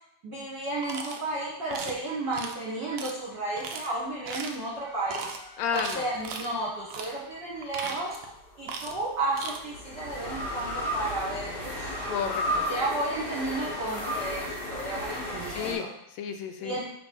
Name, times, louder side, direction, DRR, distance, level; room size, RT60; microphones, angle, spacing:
voice 1, 0.2-5.3 5.7-8.2 8.6-11.9 12.7-15.9 16.6-16.8, right 2 dB, 50° right, -7 dB, 1.5 m, -32 dB
sound 1, 0.8-1.2 1.7-2.0 2.3-2.6 3.0-3.1 3.6-3.9 4.3-4.6 5.1-5.4 5.7-6.5 6.9-7.1 7.6-8.3 8.7-9.0 9.3-9.6, right 5 dB, 85° right, 1.3 m, -37 dB
sound 2, 4.8-6.3 8.2-15.7, equal, 60° left, 0.5 m, -34 dB
voice 2, 5.6-6.1 12.1-12.6 15.5-16.8, left 7 dB, 80° left, 7 dB, 1.6 m, -32 dB
6.1 x 4.0 x 5.2 m, 0.77 s
omnidirectional pair, 3.5 m